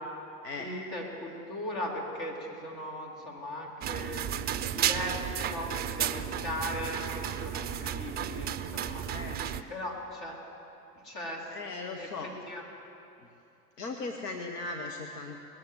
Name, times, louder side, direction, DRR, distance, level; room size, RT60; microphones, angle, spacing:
voice 1, 0.6-4.2 4.7-9.1 9.7-10.4 11.0-11.5 12.0-12.6, left 1 dB, 50° left, -1 dB, 3.5 m, -38 dB
sound 1, 3.8-9.6, right 9 dB, 20° right, 0.4 m, -33 dB
voice 2, 9.0-9.4 11.5-12.3 13.2-13.3 13.8-15.4, left 3 dB, 80° left, 3 dB, 1.0 m, -38 dB
20.0 x 7.7 x 7.6 m, 2.8 s
hypercardioid pair, 85°, 46 cm